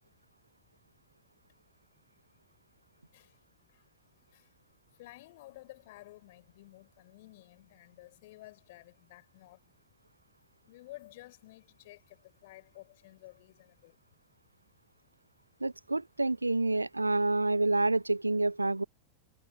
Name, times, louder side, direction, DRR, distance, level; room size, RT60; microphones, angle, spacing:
voice 1, 3.1-4.6 4.9-9.7 10.7-14.0, left 18 dB, 50° left, 3.9 m, -54 dB
voice 2, 15.6-18.8, right 2 dB, 85° right, 0.5 m, -28 dB
figure-of-eight pair, 90°, 0 cm